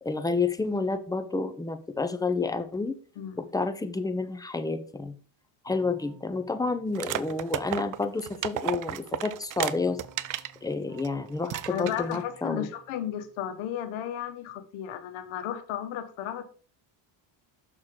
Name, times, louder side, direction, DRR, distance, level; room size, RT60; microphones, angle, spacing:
voice 1, 0.0-3.0 3.4-5.2 5.6-10.0 10.3-12.7, left 3 dB, 5° left, 9 dB, 0.7 m, -30 dB
Keyboard (musical), 5.7-8.0 9.6-13.8, right 1 dB, 20° right, 3.1 m, -54 dB
sound 1, 6.9-10.6 11.0-11.1 11.5-12.2, right 12 dB, 40° right, 0.5 m, -33 dB
voice 2, 11.7-16.4, left 10 dB, 75° left, 9 dB, 1.4 m, -34 dB
6.3 x 6.2 x 3.8 m, 0.41 s
cardioid pair, 105°, 49 cm